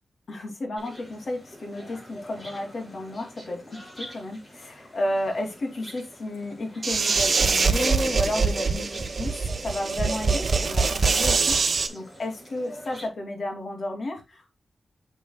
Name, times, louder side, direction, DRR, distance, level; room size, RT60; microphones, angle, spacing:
voice 1, 0.3-9.4 9.6-14.5, left 1 dB, 55° left, 2.6 m, -32 dB
sound 1, 0.8-13.1, equal, 20° left, 4.6 m, -46 dB
sound 2, 6.8-11.9, right 4 dB, 50° right, 1.0 m, -23 dB
9.1 x 6.9 x 2.2 m
wide cardioid pair, 140°, 0 cm